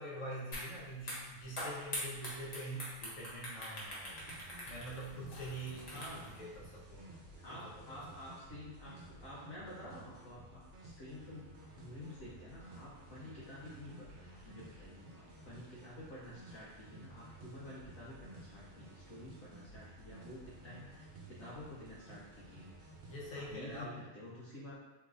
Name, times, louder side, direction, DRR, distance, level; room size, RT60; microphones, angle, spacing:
voice 1, 0.0-4.2 4.7-6.1 6.4-7.1 7.5-7.7 23.1-24.0, right 1 dB, 70° left, -4 dB, 1.2 m, -45 dB
sound 1, 0.5-0.7 1.0-6.4, left 1 dB, 35° left, 0.8 m, -43 dB
sound 2, 4.0-23.8, right 2 dB, 60° right, 0.9 m, -54 dB
voice 2, 5.9-6.3 7.4-11.5 11.8-22.7 23.3-24.8, left 1 dB, 90° left, -8 dB, 1.2 m, -50 dB
3.5 x 3.0 x 2.4 m, 1.1 s
omnidirectional pair, 1.4 m